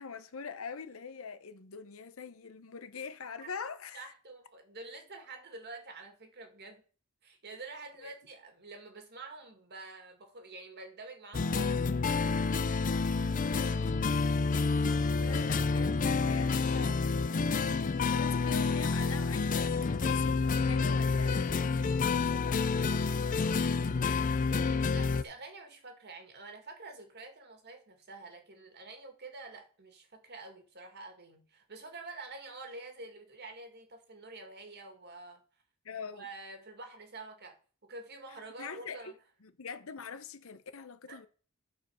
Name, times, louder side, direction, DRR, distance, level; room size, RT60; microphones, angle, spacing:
voice 1, 0.0-4.1 8.0-8.1 15.2-17.6 17.9-23.1 35.8-36.3 38.6-39.1 39.4-41.3, left 5 dB, 75° left, 0.8 m, -43 dB
voice 2, 3.9-6.8 7.2-11.8 13.1-13.4 24.3-35.4 36.1-39.1 41.1-41.3, right 3 dB, 50° right, 2.1 m, -48 dB
sound 1, 11.3-25.2, left 4 dB, 40° left, 0.4 m, -29 dB
9.8 x 4.6 x 6.3 m
head